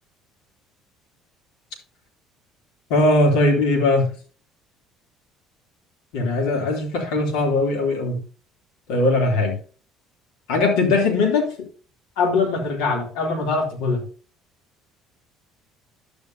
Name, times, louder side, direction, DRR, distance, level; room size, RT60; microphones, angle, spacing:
voice 1, 2.9-4.1 6.1-8.2 8.9-9.6 10.5-11.5 12.2-14.0, left 2 dB, 85° left, 1 dB, 3.1 m, -20 dB
11.5 x 8.5 x 2.7 m, 0.38 s
supercardioid pair, 85°, 0 cm